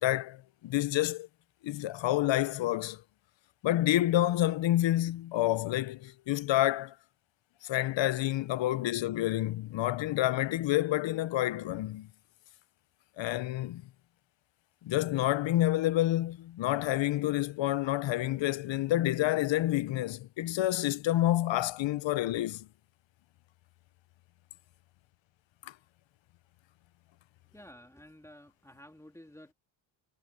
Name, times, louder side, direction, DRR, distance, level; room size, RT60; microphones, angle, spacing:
voice 1, 0.0-1.3 1.6-3.0 3.6-6.9 7.6-12.1 13.2-13.8 14.8-22.7 25.7-25.8, left 14 dB, 65° left, 0.8 m, -28 dB
voice 2, 27.5-29.5, left 1 dB, 5° left, 3.0 m, -52 dB
cardioid pair, 80°, 48 cm